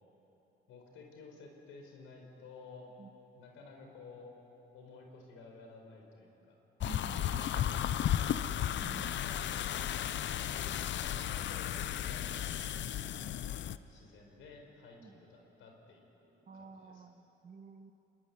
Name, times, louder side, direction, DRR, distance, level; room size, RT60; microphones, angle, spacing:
voice 1, 0.7-2.9 3.3-4.3 4.7-6.6 7.6-8.5 9.2-12.6 13.1-17.0, left 4 dB, 90° left, 2 dB, 4.9 m, -54 dB
sound 1, 6.8-13.8, left 11 dB, 65° left, 0.8 m, -34 dB
voice 2, 6.8-7.8 8.8-9.4 10.7-10.8 15.0-15.2 16.5-17.9, right 5 dB, 40° right, 7 dB, 1.7 m, -50 dB
25.0 x 22.0 x 9.6 m, 3.0 s
cardioid pair, 90°, 20 cm